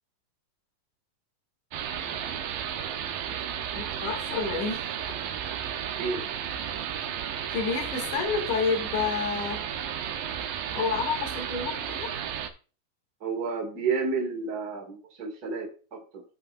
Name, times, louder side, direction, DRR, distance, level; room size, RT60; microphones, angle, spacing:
sound 1, 1.7-12.5, right 9 dB, 80° right, 2.5 m, -33 dB
voice 1, 3.7-4.8 7.5-9.6 10.8-12.1, left 5 dB, 65° left, 1 dB, 3.5 m, -29 dB
voice 2, 6.0-6.3 13.2-16.2, right 4 dB, 35° right, 1 dB, 1.9 m, -31 dB
16.5 x 5.5 x 2.5 m, 0.37 s
omnidirectional pair, 3.9 m